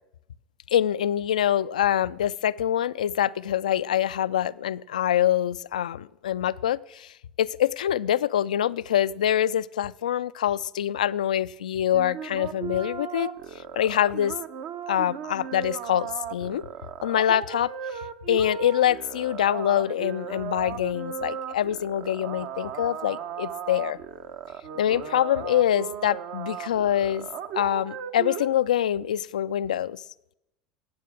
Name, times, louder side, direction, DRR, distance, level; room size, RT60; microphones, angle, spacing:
voice 1, 0.7-13.3 13.5-14.4 14.9-16.6 17.0-17.7 18.3-24.0 24.8-27.3 27.5-30.0, left 11 dB, 75° left, 19 dB, 0.3 m, -25 dB
sound 1, 11.9-28.5, right 8 dB, 55° right, 1.0 m, -36 dB
13.0 x 8.7 x 6.2 m, 0.89 s
figure-of-eight pair, 75°, 4 cm